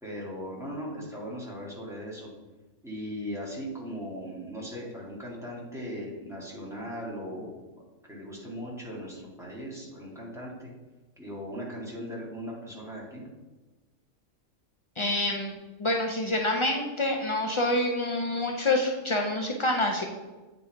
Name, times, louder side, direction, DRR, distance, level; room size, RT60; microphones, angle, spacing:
voice 1, 0.0-2.3 2.8-7.6 8.1-10.7 11.2-13.3, equal, ahead, -5 dB, 1.9 m, -38 dB
voice 2, 15.0-15.5 15.8-20.1, left 1 dB, 50° left, 2 dB, 0.3 m, -27 dB
8.4 x 4.1 x 4.5 m, 1.2 s
omnidirectional pair, 1.3 m